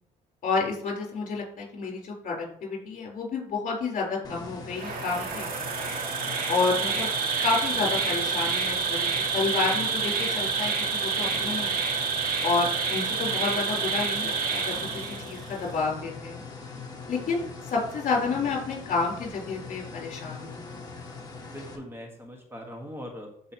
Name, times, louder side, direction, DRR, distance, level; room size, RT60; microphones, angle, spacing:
voice 1, 0.4-5.5 6.5-7.1 7.4-11.8 12.4-14.9 15.2-16.4 17.1-20.6, left 4 dB, 50° left, -1 dB, 3.9 m, -30 dB
sound 1, 4.2-21.8, left 4 dB, 25° left, 1.8 m, -41 dB
Insect, 4.7-15.5, right 5 dB, 60° right, 2.1 m, -28 dB
voice 2, 21.5-23.5, equal, 15° right, 1 dB, 1.5 m, -41 dB
15.0 x 5.0 x 3.0 m, 0.68 s
cardioid pair, 110°, 17 cm